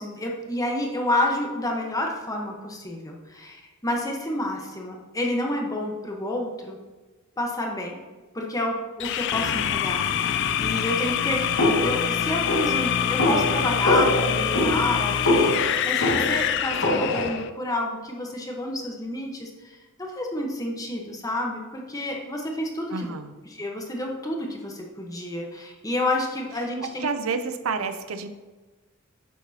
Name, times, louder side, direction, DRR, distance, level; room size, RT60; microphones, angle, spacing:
voice 1, 0.0-6.8 7.4-8.0 8.3-10.0 10.3-11.4 11.8-23.1 23.5-27.1, left 1 dB, 15° left, 0 dB, 1.1 m, -29 dB
sound 1, 9.0-17.5, left 9 dB, 55° left, 0.4 m, -25 dB
sound 2, 11.6-17.3, left 1 dB, 75° left, 2.1 m, -24 dB
voice 2, 22.9-23.3 27.0-28.3, right 4 dB, 90° right, 9 dB, 0.6 m, -29 dB
9.4 x 7.0 x 2.9 m, 1.2 s
head